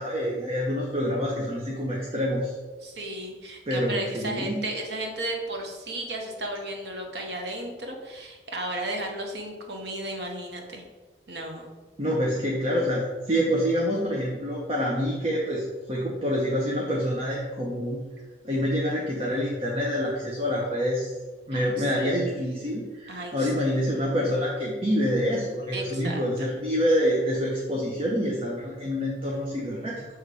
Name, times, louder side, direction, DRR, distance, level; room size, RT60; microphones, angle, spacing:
voice 1, 0.0-2.6 3.7-4.6 12.0-18.0 18.4-21.1 21.5-30.1, equal, 35° right, -3 dB, 0.8 m, -27 dB
voice 2, 2.8-10.8 11.3-11.7 21.5-22.2 23.1-23.5 25.7-26.5, right 1 dB, 75° right, 2 dB, 1.1 m, -34 dB
6.6 x 3.2 x 4.8 m, 1.3 s
head